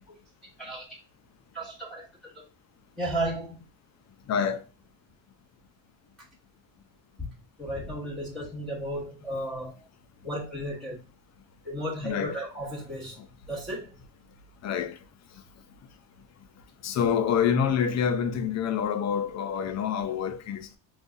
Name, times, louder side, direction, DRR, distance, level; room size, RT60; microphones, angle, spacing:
voice 1, 0.6-0.9 1.5-2.4 3.0-3.6 7.6-9.7 10.2-11.0 11.6-13.2 13.5-13.9, right 1 dB, ahead, 1.2 m, -34 dB
voice 2, 12.0-12.3 14.6-14.9 16.8-20.7, left 7 dB, 35° left, 0.5 m, -26 dB
3.9 x 2.4 x 2.4 m
supercardioid pair, 90°, 47 cm